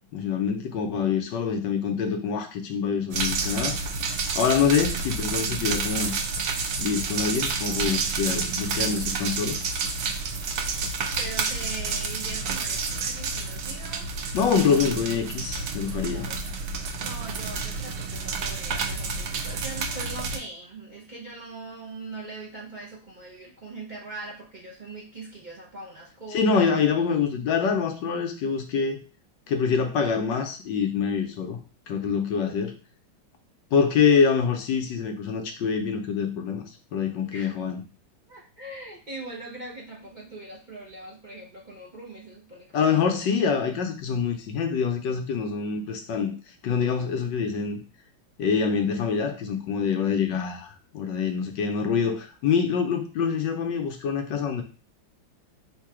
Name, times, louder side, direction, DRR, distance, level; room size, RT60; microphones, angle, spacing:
voice 1, 0.1-3.8 4.3-6.1 6.8-9.6 14.3-16.3 26.3-29.0 29.5-31.6 31.9-32.7 33.7-36.6 36.9-37.8 42.7-46.3 46.6-47.8 48.4-54.6, left 6 dB, 70° left, 4 dB, 1.2 m, -25 dB
sound 1, 3.1-20.4, right 4 dB, 75° right, 1.4 m, -29 dB
voice 2, 11.2-14.1 16.1-26.7 37.3-37.6 38.3-43.1, right 2 dB, 50° right, -4 dB, 0.5 m, -41 dB
3.7 x 2.8 x 4.6 m, 0.35 s
omnidirectional pair, 2.2 m